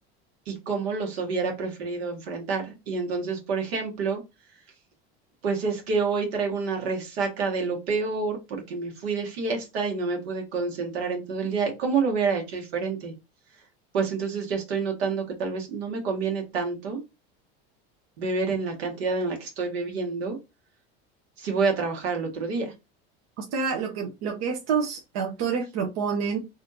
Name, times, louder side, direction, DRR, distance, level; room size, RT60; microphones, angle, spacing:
voice 1, 0.5-4.2 5.4-13.1 13.9-17.0 18.2-20.4 21.4-22.7, right 4 dB, 80° right, 1.6 m, -28 dB
voice 2, 23.4-26.4, right 6 dB, 55° right, 0.9 m, -28 dB
4.1 x 2.6 x 2.7 m
hypercardioid pair, 90°, 31 cm